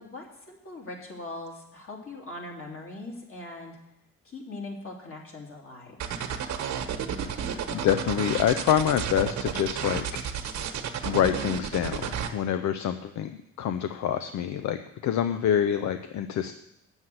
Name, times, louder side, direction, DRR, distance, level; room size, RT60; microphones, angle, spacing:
voice 1, 0.0-3.8 4.2-6.0, left 2 dB, 45° left, -1 dB, 2.9 m, -41 dB
sound 1, 6.0-12.3, right 8 dB, 65° right, 1.2 m, -32 dB
voice 2, 7.4-10.0 11.0-16.5, left 9 dB, 70° left, 9 dB, 0.6 m, -26 dB
8.0 x 7.2 x 7.7 m, 0.81 s
cardioid pair, 90°, 30 cm